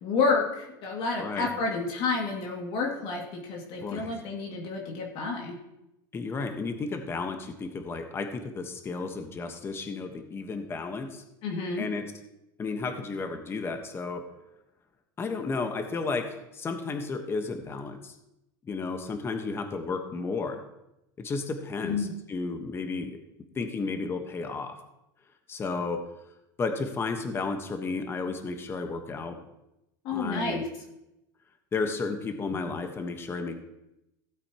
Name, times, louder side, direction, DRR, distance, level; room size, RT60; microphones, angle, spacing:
voice 1, 0.0-5.6 11.4-11.9 21.8-22.1 30.0-30.6, left 4 dB, 50° left, 0 dB, 2.3 m, -30 dB
voice 2, 1.2-1.5 3.8-4.1 6.1-11.2 11.8-12.1 12.6-14.3 15.2-18.1 18.6-20.6 21.2-23.1 23.5-24.8 25.5-26.0 26.6-29.4 30.1-30.6 31.7-33.6, left 4 dB, 20° left, 6 dB, 1.2 m, -33 dB
16.5 x 8.2 x 3.0 m, 0.88 s
supercardioid pair, 125°, 11 cm